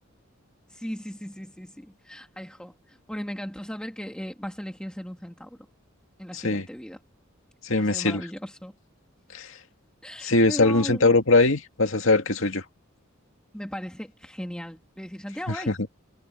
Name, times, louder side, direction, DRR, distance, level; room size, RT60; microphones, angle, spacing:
voice 1, 0.7-5.6 6.2-7.0 7.8-8.7 10.0-11.2 13.5-15.8, equal, 5° left, 1.9 m, -37 dB
voice 2, 6.3-6.7 7.6-8.2 9.3-9.6 10.2-12.6 15.7-15.8, left 3 dB, 80° left, 2.2 m, -21 dB
head